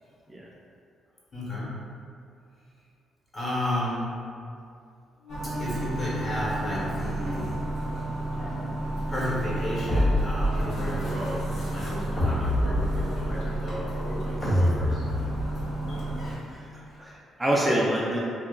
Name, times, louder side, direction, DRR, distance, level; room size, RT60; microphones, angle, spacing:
voice 1, 1.3-1.8 3.3-4.2 5.4-7.6 9.1-15.0 16.2-17.0, left 1 dB, 35° left, -7 dB, 1.0 m, -33 dB
Wind instrument woodwind instrument, 5.2-10.6, right 1 dB, 75° right, 0.5 m, -41 dB
sound 1, 5.3-16.4, right 1 dB, 70° left, 0.7 m, -31 dB
sound 2, 9.9-11.0 12.2-13.4 14.4-15.7, left 1 dB, 55° left, 1.1 m, -26 dB
voice 2, 16.7-18.2, right 1 dB, 15° right, -5 dB, 0.3 m, -27 dB
2.7 x 2.3 x 2.2 m, 2.4 s
cardioid pair, 90°, 0 cm